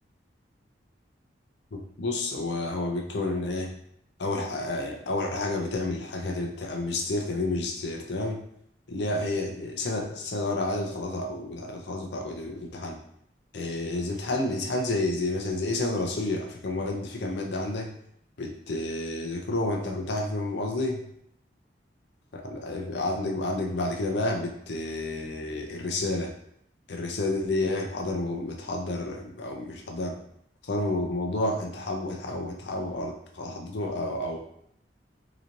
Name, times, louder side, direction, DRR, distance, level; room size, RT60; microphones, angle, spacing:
voice 1, 1.7-3.7 4.2-8.4 8.9-13.0 13.5-17.9 18.4-21.0 22.3-26.3 26.9-30.2 30.6-34.4, left 2 dB, 70° left, 2 dB, 0.6 m, -30 dB
3.9 x 2.9 x 2.8 m, 0.72 s
head